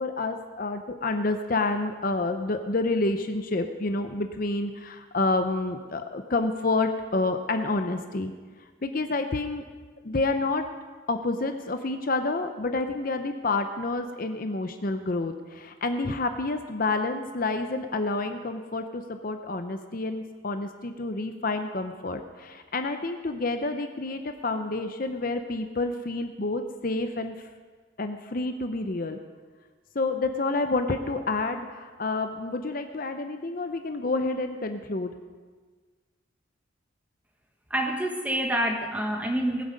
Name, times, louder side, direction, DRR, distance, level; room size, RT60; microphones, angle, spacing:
voice 1, 0.0-8.3 8.8-9.6 10.0-10.6 11.1-27.5 28.0-29.2 29.9-35.1, left 3 dB, 45° left, 7 dB, 0.6 m, -29 dB
voice 2, 37.7-39.6, right 1 dB, 10° right, 2 dB, 1.2 m, -27 dB
19.0 x 8.2 x 5.2 m, 1.5 s
head